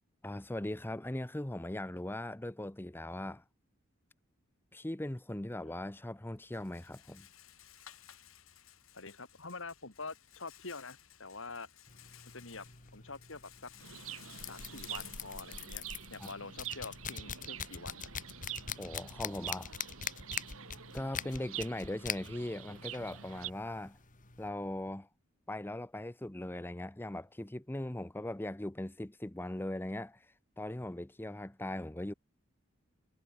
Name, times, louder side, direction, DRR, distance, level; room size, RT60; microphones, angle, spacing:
voice 1, 0.2-3.4 4.7-7.3 16.2-16.3 18.8-19.7 20.9-24.0 24.4-25.1 25.5-30.3 30.6-32.1, left 1 dB, 10° left, 0.7 m, -39 dB
Rattle, 5.3-16.4, left 10 dB, 85° left, 5.2 m, -59 dB
voice 2, 8.9-11.7 12.3-12.7 12.9-13.7 14.5-15.8 16.1-18.1, left 3 dB, 65° left, 3.6 m, -46 dB
sound 1, 11.9-24.5, left 7 dB, 40° left, 2.3 m, -44 dB
Chirp tweet, 13.8-23.5, right 10 dB, 85° right, 2.2 m, -46 dB
head